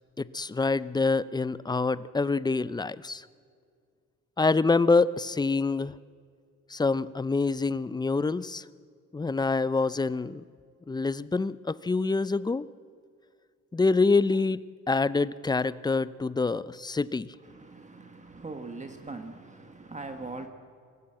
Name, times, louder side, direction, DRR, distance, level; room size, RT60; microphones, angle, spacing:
voice 1, 0.2-3.2 4.4-5.9 6.7-8.6 9.1-10.4 10.9-12.7 13.7-14.6 14.9-17.3, left 3 dB, 15° left, 17 dB, 0.5 m, -26 dB
voice 2, 17.4-20.5, right 3 dB, 25° right, 6 dB, 1.4 m, -41 dB
24.5 x 15.5 x 7.8 m, 2.1 s
cardioid pair, 90°, 30 cm